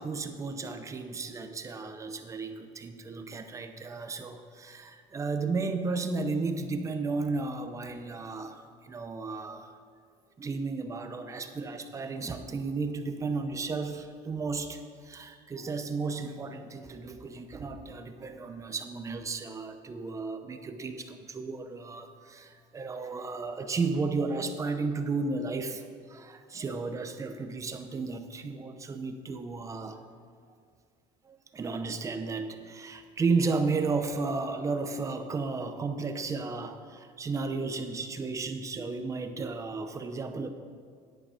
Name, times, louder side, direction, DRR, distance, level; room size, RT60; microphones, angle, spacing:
voice 1, 0.0-9.7 10.4-30.0 31.3-40.5, right 4 dB, 20° right, 7 dB, 0.7 m, -33 dB
10.0 x 8.6 x 5.0 m, 2.2 s
cardioid pair, 145°, 15 cm